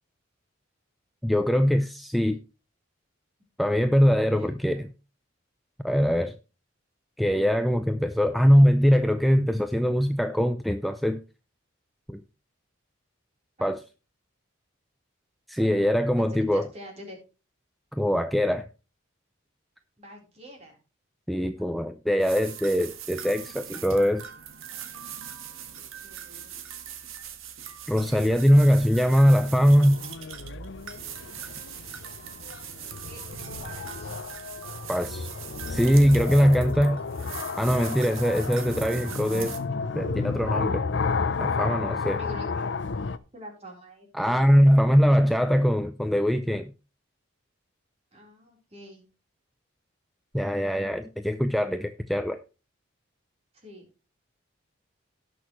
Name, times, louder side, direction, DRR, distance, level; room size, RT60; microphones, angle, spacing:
voice 1, 1.2-2.4 3.6-4.8 5.8-6.3 7.2-11.2 12.1-12.2 13.6-13.8 15.5-16.7 17.9-18.7 21.3-24.2 27.9-30.0 34.9-35.3 35.7-37.0 37.6-39.6 39.9-40.8 41.4-42.2 44.1-46.7 50.3-52.4, equal, ahead, 7 dB, 0.4 m, -22 dB
voice 2, 4.3-4.8 13.6-13.7 15.6-15.9 16.2-17.2 20.0-20.8 21.6-21.7 25.7-26.5 32.1-33.2 33.6-34.1 42.2-42.7 43.3-44.5 48.1-49.1 53.5-53.9, left 1 dB, 30° right, 0 dB, 3.9 m, -46 dB
sound 1, 22.2-39.6, right 9 dB, 85° right, 1.5 m, -41 dB
sound 2, 27.9-43.2, left 4 dB, 60° left, 0.6 m, -32 dB
17.5 x 6.3 x 3.1 m, 0.31 s
head